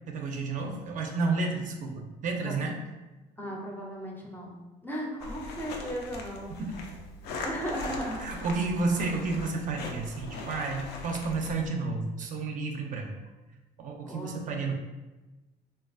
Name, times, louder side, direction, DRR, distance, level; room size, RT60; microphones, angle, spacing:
voice 1, 0.1-2.8 8.2-13.1 13.8-14.7, right 3 dB, 50° right, 2 dB, 0.4 m, -31 dB
voice 2, 3.4-6.5 7.4-8.5 14.0-14.7, equal, 10° left, -1 dB, 0.5 m, -36 dB
sound 1, 5.2-11.7, left 2 dB, 85° left, 0.4 m, -40 dB
3.1 x 2.3 x 2.4 m, 1.1 s
cardioid pair, 110°, 17 cm